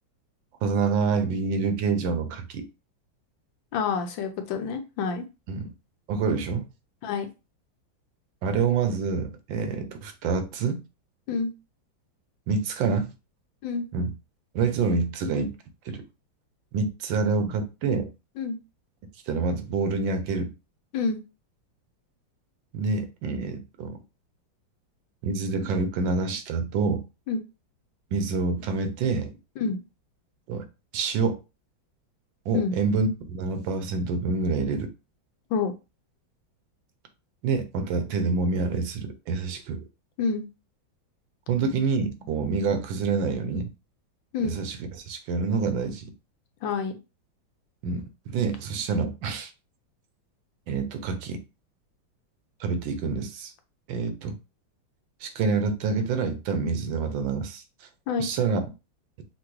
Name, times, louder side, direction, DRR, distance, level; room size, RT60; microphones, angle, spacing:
voice 1, 0.6-2.6 5.5-5.7 6.1-6.7 8.4-10.8 12.5-13.1 13.9-14.1 14.5-15.5 15.8-16.0 16.7-18.1 19.3-20.5 22.7-24.0 25.2-27.0 28.1-29.3 30.5-30.7 30.9-31.4 32.5-34.9 37.4-39.8 41.5-43.7 44.4-44.8 45.1-46.1 47.8-49.5 50.7-51.4 52.6-53.5 53.9-54.4 55.2-57.6 58.2-58.6, right 4 dB, 80° right, 1.4 m, -27 dB
voice 2, 3.7-5.2 7.0-7.3 11.3-11.5 13.6-13.9 18.4-18.6 20.9-21.2 27.3-27.4 29.6-29.8 32.5-32.8 35.5-35.7 40.2-40.5 44.3-44.5 46.6-47.0 58.1-58.3, left 5 dB, 80° left, 1.4 m, -27 dB
6.0 x 2.6 x 3.0 m
omnidirectional pair, 2.1 m